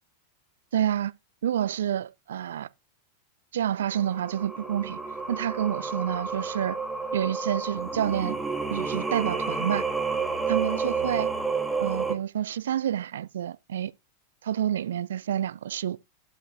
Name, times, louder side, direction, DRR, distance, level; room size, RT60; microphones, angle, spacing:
voice 1, 0.7-1.1 1.4-2.7 3.5-5.0 5.3-6.8 7.1-8.4 8.7-9.8 10.5-11.3 11.8-13.9 14.4-16.0, right 10 dB, 60° right, 0.4 m, -28 dB
Singing, 3.9-12.1, right 4 dB, 5° right, 1.7 m, -30 dB
11.0 x 5.7 x 2.6 m
figure-of-eight pair, 90°, 0 cm